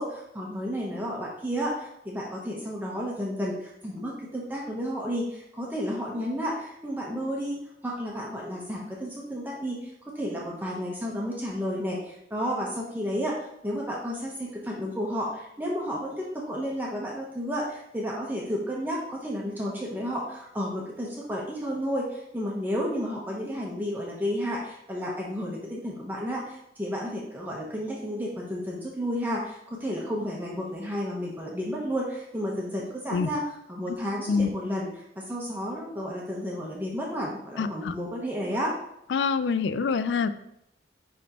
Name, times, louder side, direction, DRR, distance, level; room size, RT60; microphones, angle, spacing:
voice 1, 0.0-38.7, equal, 10° right, -4 dB, 0.9 m, -32 dB
voice 2, 37.6-37.9 39.1-40.3, left 5 dB, 85° left, 13 dB, 0.4 m, -25 dB
10.0 x 3.4 x 2.9 m, 0.80 s
head